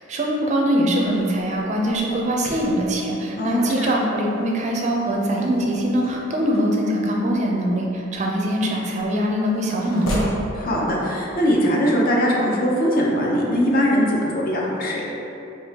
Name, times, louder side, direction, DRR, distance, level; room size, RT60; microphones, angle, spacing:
voice 1, 0.1-10.3, equal, 35° right, -1 dB, 0.5 m, -22 dB
sound 1, 0.8-10.5, equal, 80° left, 0.9 m, -36 dB
voice 2, 3.4-4.0 10.5-15.1, equal, 45° left, -3 dB, 0.6 m, -21 dB
5.2 x 2.8 x 2.8 m, 3.0 s
head